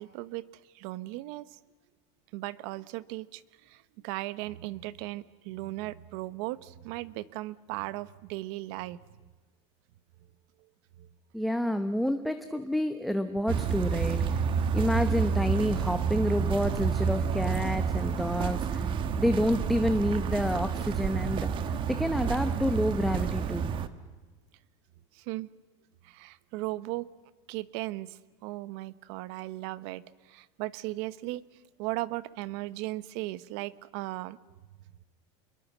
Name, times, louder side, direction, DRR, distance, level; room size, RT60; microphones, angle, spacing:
voice 1, 0.0-1.6 2.3-9.0 11.0-11.1 25.1-25.5 26.0-27.1 27.5-31.4 31.8-34.4, right 18 dB, 60° right, 17 dB, 1.0 m, -37 dB
voice 2, 11.3-14.4 14.7-23.7, equal, ahead, 8 dB, 0.9 m, -29 dB
sound 1, 13.5-23.9, right 6 dB, 35° right, 1.3 m, -29 dB
28.0 x 22.5 x 7.4 m, 1.3 s
supercardioid pair, 145°, 15 cm